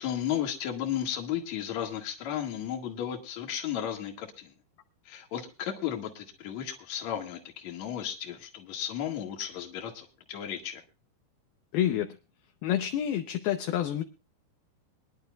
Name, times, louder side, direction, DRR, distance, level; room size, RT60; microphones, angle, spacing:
voice 1, 0.0-4.5 5.1-10.8, left 10 dB, 50° left, 2 dB, 2.5 m, -34 dB
voice 2, 11.7-12.2 12.6-14.0, left 11 dB, 75° left, 6 dB, 2.4 m, -28 dB
23.5 x 11.0 x 2.3 m, 0.32 s
omnidirectional pair, 5.2 m